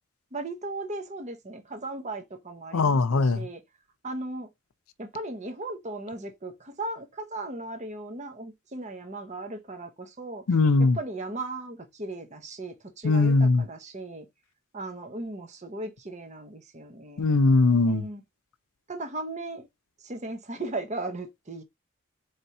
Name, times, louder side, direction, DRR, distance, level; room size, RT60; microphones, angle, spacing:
voice 1, 0.3-3.6 4.0-4.5 5.0-10.4 10.8-14.3 14.7-17.3 17.8-18.2 18.9-19.7 20.0-21.6, right 2 dB, 35° right, 0.9 m, -37 dB
voice 2, 2.7-3.5 10.5-11.0 13.0-13.6 17.2-18.0, left 3 dB, 85° left, 0.6 m, -20 dB
4.4 x 3.4 x 2.7 m
head